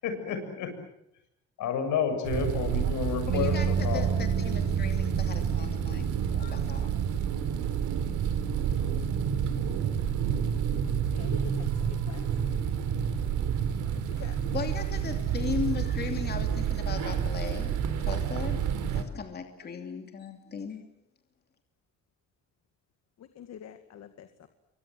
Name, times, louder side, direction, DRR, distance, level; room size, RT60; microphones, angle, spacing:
voice 1, 0.0-0.7 1.6-4.1, left 7 dB, 80° left, 7.5 m, -30 dB
sound 1, 2.2-19.0, right 8 dB, 80° right, 3.7 m, -29 dB
voice 2, 3.3-3.7 3.9-6.9 14.2-17.7 18.0-20.8, left 5 dB, 35° left, 2.9 m, -37 dB
sound 2, 3.3-9.5, right 5 dB, 60° right, 7.6 m, -33 dB
voice 3, 11.1-11.7 12.1-12.3 14.2-14.4 23.4-24.5, left 9 dB, 60° left, 2.1 m, -45 dB
29.0 x 24.5 x 7.8 m
cardioid pair, 155°, 30 cm